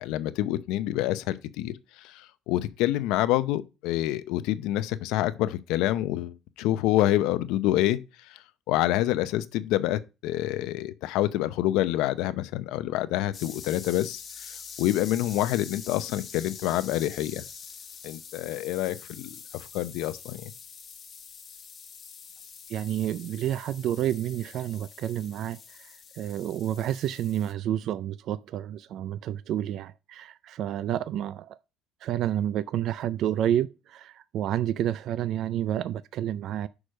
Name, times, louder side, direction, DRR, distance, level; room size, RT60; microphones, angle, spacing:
voice 1, 0.0-8.0 8.2-8.4 8.7-17.4 18.0-20.4, left 14 dB, 85° left, 0.7 m, -27 dB
sound 1, 13.3-27.5, left 6 dB, 30° left, 1.1 m, -45 dB
voice 2, 22.7-31.6 32.0-36.7, right 11 dB, 50° right, 0.3 m, -30 dB
6.3 x 4.9 x 6.5 m
cardioid pair, 165°, 0 cm